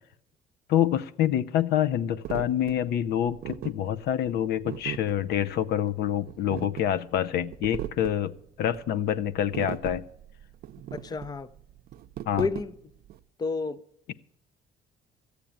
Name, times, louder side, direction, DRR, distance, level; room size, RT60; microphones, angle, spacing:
voice 1, 0.7-8.3 8.6-10.0 12.3-12.4, left 10 dB, 70° left, 0.7 m, -26 dB
sound 1, 2.2-13.2, right 12 dB, 65° right, 0.6 m, -39 dB
voice 2, 10.9-11.5 12.3-12.7 13.4-13.8, left 4 dB, 25° left, 0.6 m, -30 dB
13.5 x 8.3 x 8.9 m
cardioid pair, 110°, 17 cm